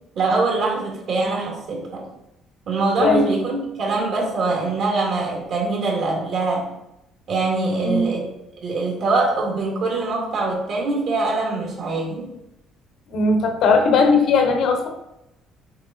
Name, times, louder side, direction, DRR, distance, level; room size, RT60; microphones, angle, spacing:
voice 1, 0.2-2.1 2.7-6.7 7.3-8.3 8.5-12.3, right 3 dB, 50° right, -1 dB, 2.0 m, -23 dB
voice 2, 13.1-14.9, left 4 dB, 60° left, 5 dB, 1.0 m, -18 dB
7.0 x 4.6 x 4.0 m, 0.87 s
cardioid pair, 155°, 0 cm